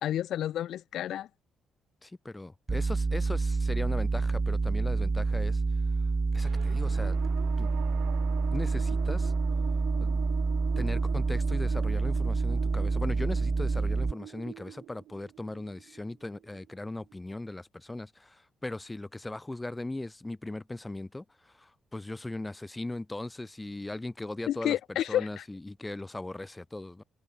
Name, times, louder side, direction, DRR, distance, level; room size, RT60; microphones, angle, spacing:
voice 1, 0.0-1.3 24.5-25.4, left 11 dB, 70° left, 2.6 m, -30 dB
voice 2, 2.0-5.6 6.3-7.2 7.6-7.7 8.5-9.3 10.0-10.2 10.8-27.0, left 2 dB, 10° left, 3.8 m, -38 dB
sound 1, 2.7-14.1, right 4 dB, 20° right, 0.8 m, -28 dB
sound 2, 6.4-17.1, right 13 dB, 85° right, 6.5 m, -44 dB
cardioid pair, 150°, 0 cm